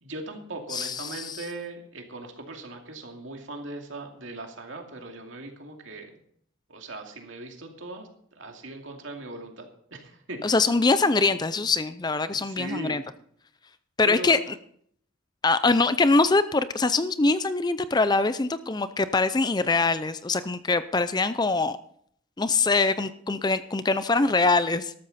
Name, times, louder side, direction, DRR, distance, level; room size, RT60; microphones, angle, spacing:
voice 1, 0.0-6.2 6.7-8.1 8.4-10.6 12.3-13.0 14.0-14.3, right 2 dB, 65° right, 3 dB, 2.4 m, -39 dB
voice 2, 0.7-1.4 10.4-13.0 14.0-14.6 15.4-21.8 22.4-24.9, left 3 dB, 20° left, 13 dB, 0.4 m, -23 dB
13.0 x 13.0 x 4.2 m, 0.63 s
head